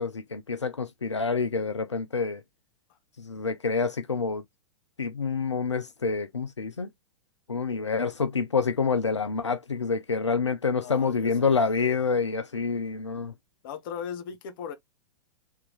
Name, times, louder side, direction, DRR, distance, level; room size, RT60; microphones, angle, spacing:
voice 1, 0.0-2.4 3.2-4.4 5.0-6.9 7.5-13.3, left 5 dB, 90° left, 0.5 m, -27 dB
voice 2, 10.8-12.0 13.6-14.7, left 7 dB, 50° left, 1.2 m, -38 dB
3.7 x 3.4 x 2.9 m
figure-of-eight pair, 100°, 15 cm